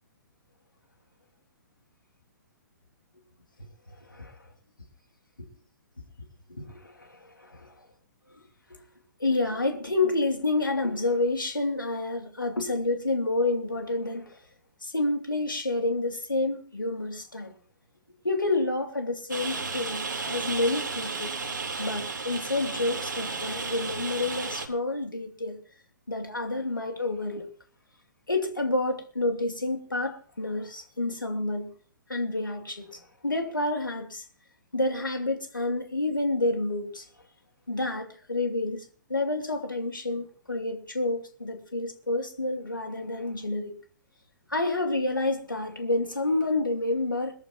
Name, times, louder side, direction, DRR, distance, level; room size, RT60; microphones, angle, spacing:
voice 1, 3.9-4.4 6.2-7.7 8.7-8.8 9.2-14.4 14.8-17.5 18.2-21.3 21.8-25.6 26.1-27.5 28.3-31.7 32.1-34.2 34.7-37.1 37.7-43.8 44.5-47.3, left 2 dB, 85° left, 2.7 m, -29 dB
Rain, 19.3-24.7, right 4 dB, 75° right, 3.6 m, -33 dB
22.0 x 13.5 x 3.0 m
figure-of-eight pair, 120°, 11 cm